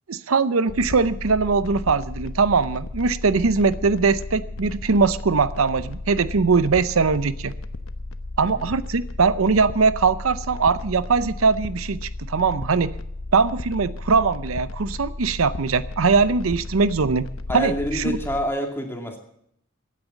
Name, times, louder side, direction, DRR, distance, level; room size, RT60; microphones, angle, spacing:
voice 1, 0.1-7.5 8.4-12.9 13.3-17.3 17.5-18.2, right 4 dB, 80° right, 15 dB, 0.7 m, -21 dB
sound 1, 0.7-18.4, left 2 dB, 75° left, 0.9 m, -34 dB
voice 2, 17.5-19.2, equal, 10° left, 3 dB, 2.4 m, -27 dB
16.0 x 9.2 x 7.2 m, 0.72 s
head